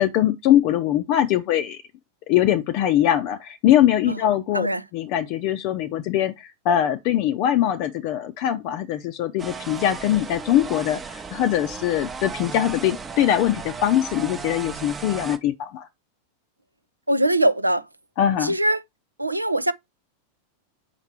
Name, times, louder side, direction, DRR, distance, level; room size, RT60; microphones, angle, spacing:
voice 1, 0.0-1.8 2.3-4.7 4.9-15.9 18.2-18.5, left 11 dB, 45° left, 0.5 m, -22 dB
sound 1, 9.4-15.4, right 5 dB, 15° right, 0.7 m, -35 dB
voice 2, 17.1-17.8 18.4-18.8 19.2-19.7, right 1 dB, 85° right, 0.5 m, -21 dB
5.7 x 4.6 x 4.2 m
figure-of-eight pair, 90°, 0 cm